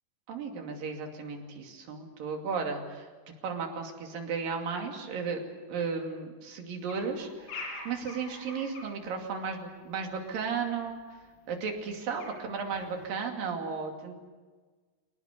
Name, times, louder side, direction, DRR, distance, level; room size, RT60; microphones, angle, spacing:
voice 1, 0.3-3.1 3.4-5.4 5.7-11.0 11.5-14.2, right 5 dB, 60° right, 2 dB, 4.2 m, -34 dB
sound 1, 6.9-8.9 10.2-10.3 10.8-10.9 11.2-11.3 11.6-12.4 12.7-13.1, left 3 dB, 60° left, 6.5 m, -43 dB
24.5 x 19.0 x 8.3 m, 1.4 s
omnidirectional pair, 4.7 m